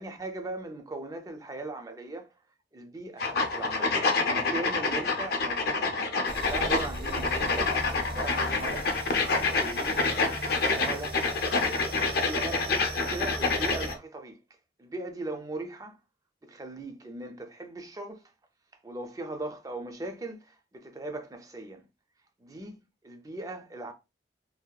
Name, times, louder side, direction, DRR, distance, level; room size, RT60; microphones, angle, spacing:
voice 1, 0.0-2.3 2.7-6.0 6.4-7.8 8.1-8.9 9.5-10.1 10.6-11.2 12.1-14.4 14.8-16.0 16.4-18.3 18.8-21.8 22.4-23.9, right 2 dB, 20° right, 0.4 m, -39 dB
sound 1, 3.2-14.0, left 3 dB, 60° left, 0.5 m, -27 dB
sound 2, 6.2-14.0, right 2 dB, 60° right, 0.7 m, -39 dB
2.7 x 2.2 x 2.2 m
head